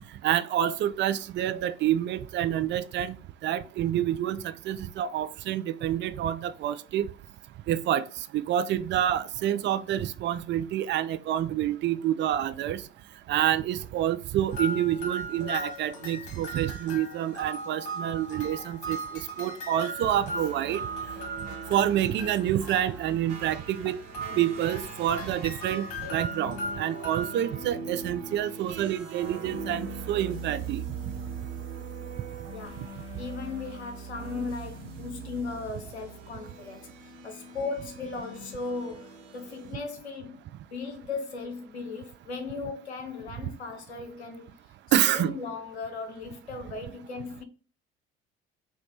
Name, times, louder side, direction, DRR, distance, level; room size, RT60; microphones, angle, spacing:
voice 1, 0.2-3.2 3.4-7.1 7.7-8.1 8.3-12.8 13.3-19.0 19.4-20.8 21.7-24.0 24.4-30.8 32.8-32.9 44.9-45.4, right 11 dB, 35° right, 0.4 m, -28 dB
sound 1, 14.5-23.3 23.8-27.4, right 1 dB, 65° left, 1.2 m, -38 dB
sound 2, 20.0-39.7, right 4 dB, 60° right, 1.0 m, -41 dB
voice 2, 32.5-32.8 33.2-44.6 45.1-47.4, left 4 dB, 85° left, 0.6 m, -37 dB
sound 3, 32.6-35.6, right 11 dB, 15° left, 1.5 m, -46 dB
5.4 x 2.2 x 2.7 m
figure-of-eight pair, 55°, 32 cm